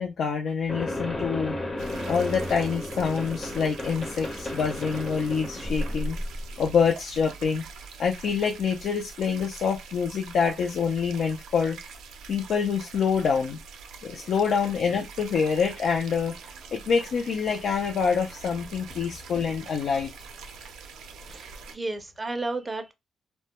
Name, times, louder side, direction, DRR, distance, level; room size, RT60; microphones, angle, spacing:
voice 1, 0.0-1.6 2.1-6.2 6.6-7.6 8.0-11.8 12.3-13.6 14.0-16.3 16.7-20.1, left 6 dB, 70° left, 0.3 m, -26 dB
sound 1, 0.7-6.7, left 1 dB, 40° left, 0.7 m, -33 dB
sound 2, 1.8-21.8, right 5 dB, 85° right, 0.4 m, -44 dB
voice 2, 21.3-22.9, right 2 dB, 25° right, 0.4 m, -33 dB
2.1 x 2.1 x 2.8 m
cardioid pair, 70°, 0 cm